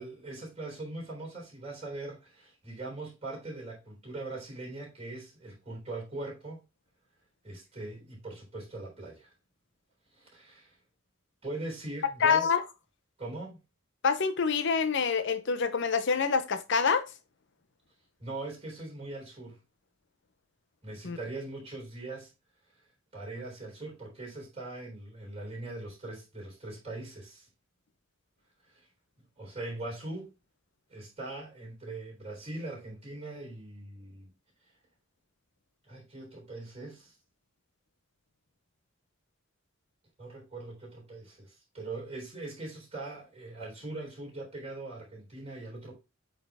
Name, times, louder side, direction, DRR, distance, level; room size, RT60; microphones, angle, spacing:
voice 1, 0.0-6.6 7.4-9.3 10.1-10.8 11.4-12.5 13.2-13.6 18.2-19.6 20.8-22.3 23.1-27.5 28.7-28.9 29.4-30.3 30.9-34.3 35.8-37.1 40.2-45.9, right 2 dB, 30° right, 3.7 m, -41 dB
voice 2, 12.2-12.6 14.0-17.0 21.0-21.2, left 5 dB, 60° left, 0.7 m, -26 dB
8.2 x 3.7 x 3.4 m
head